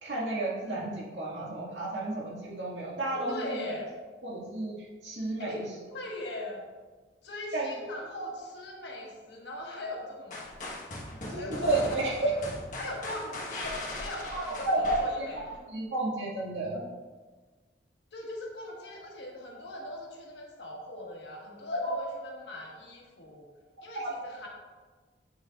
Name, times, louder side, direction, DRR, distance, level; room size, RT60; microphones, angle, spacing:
voice 1, 0.0-3.6 4.2-5.7 7.5-7.7 11.3-12.5 14.3-15.3 15.7-16.8 21.7-21.9 23.9-24.1, right 2 dB, 85° right, -5 dB, 2.0 m, -31 dB
voice 2, 3.1-3.9 5.4-5.6 5.9-6.6 7.2-10.5 11.3-12.1 12.8-15.6 18.1-23.5 23.8-24.5, left 1 dB, 80° left, -2 dB, 1.4 m, -40 dB
sound 1, 10.3-15.6, left 1 dB, 45° left, 1.3 m, -39 dB
8.2 x 6.1 x 2.4 m, 1.4 s
head